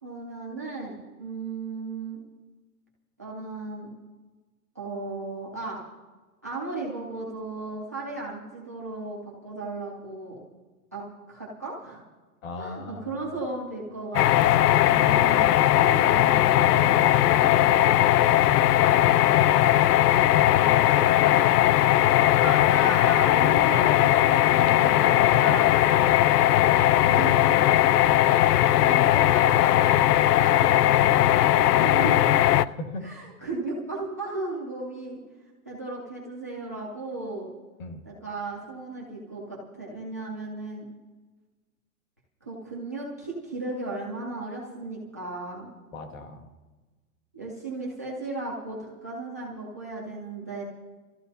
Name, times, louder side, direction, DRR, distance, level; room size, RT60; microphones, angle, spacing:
voice 1, 0.0-2.2 3.2-3.9 4.7-5.8 6.4-10.4 10.9-12.0 12.6-18.0 20.6-21.4 22.4-26.1 27.0-27.6 28.4-32.4 33.0-35.2 35.7-37.5 38.1-40.9 42.4-45.7 47.3-50.6, right 3 dB, 10° right, -4 dB, 0.4 m, -36 dB
voice 2, 12.4-13.4 26.7-27.0 32.6-33.2 37.8-38.0 45.9-46.5, left 2 dB, 60° left, 4 dB, 2.1 m, -39 dB
sound 1, 14.1-32.6, left 13 dB, 90° left, 0.6 m, -19 dB
26.5 x 14.0 x 2.7 m, 1.3 s
hypercardioid pair, 165°, 45 cm